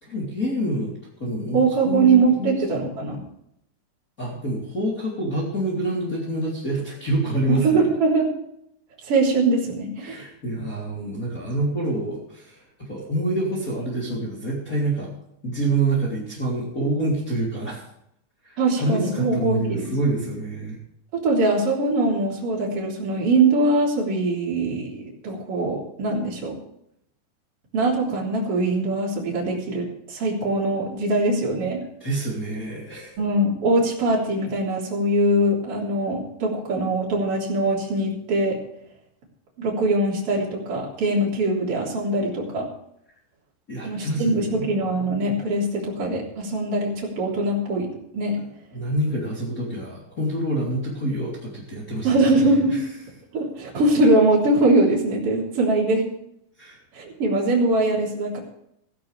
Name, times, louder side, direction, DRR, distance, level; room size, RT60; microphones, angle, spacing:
voice 1, 0.0-0.9 1.2-2.5 4.2-7.9 10.0-15.1 15.4-17.8 18.4-20.8 32.0-33.2 43.7-44.7 48.7-52.2 52.7-52.8 56.6-56.8, right 1 dB, 25° left, -5 dB, 3.4 m, -27 dB
voice 2, 1.5-3.2 7.5-8.3 9.1-10.2 18.6-19.9 21.1-26.6 27.7-31.8 33.2-38.6 39.6-42.7 43.8-48.4 52.0-52.8 53.3-56.0 56.9-58.4, right 2 dB, 40° right, -4 dB, 4.3 m, -22 dB
17.0 x 15.0 x 3.4 m, 0.74 s
omnidirectional pair, 4.4 m